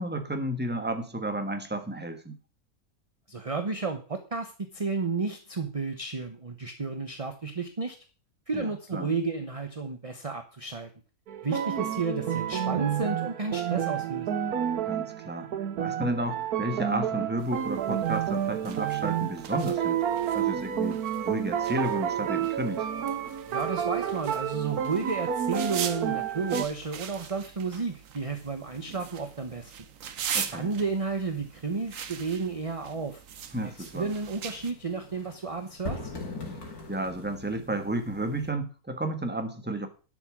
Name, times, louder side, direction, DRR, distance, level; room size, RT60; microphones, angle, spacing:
voice 1, 0.0-2.4 8.5-9.1 14.9-15.5 15.8-20.0 20.3-22.9 30.3-30.7 33.5-34.1 36.9-39.9, right 1 dB, 5° right, 6 dB, 1.4 m, -32 dB
voice 2, 3.3-8.0 8.5-10.9 11.4-14.4 23.5-29.7 30.3-33.2 33.6-36.1, right 4 dB, 25° right, 7 dB, 1.0 m, -32 dB
sound 1, 11.3-26.7, right 9 dB, 90° right, 1.4 m, -30 dB
sound 2, 17.4-34.7, right 8 dB, 65° right, 1.3 m, -41 dB
sound 3, 33.4-38.5, left 2 dB, 90° left, 3.1 m, -42 dB
11.5 x 6.8 x 6.1 m, 0.35 s
omnidirectional pair, 1.6 m